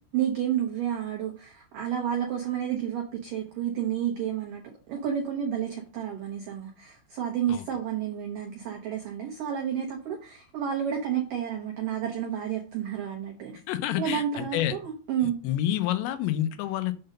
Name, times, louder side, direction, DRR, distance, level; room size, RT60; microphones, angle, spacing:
voice 1, 0.1-4.6 4.9-13.5 14.0-15.4, right 9 dB, 90° right, 0 dB, 1.8 m, -30 dB
voice 2, 13.7-14.7 15.4-16.9, left 12 dB, 85° left, 11 dB, 3.4 m, -28 dB
7.8 x 3.9 x 6.6 m, 0.37 s
omnidirectional pair, 5.8 m